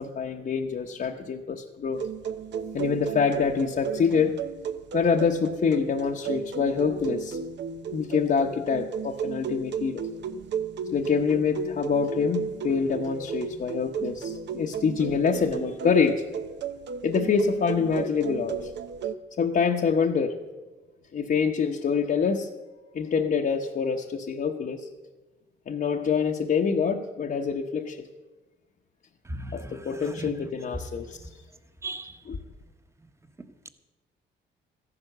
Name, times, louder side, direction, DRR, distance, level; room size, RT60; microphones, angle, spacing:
voice 1, 0.0-2.0 2.7-4.4 4.9-7.4 7.9-10.1 10.9-16.2 17.0-18.7 19.4-20.3 21.1-22.5 22.9-24.9 25.7-28.1 29.5-31.2 32.3-32.4, left 6 dB, 45° left, 1 dB, 0.9 m, -26 dB
sound 1, 1.9-19.1, right 6 dB, 65° right, 0.8 m, -34 dB
voice 2, 29.3-30.3 31.8-32.2, right 2 dB, 15° right, 9 dB, 1.1 m, -37 dB
14.0 x 11.0 x 6.7 m, 1.2 s
cardioid pair, 90°, 20 cm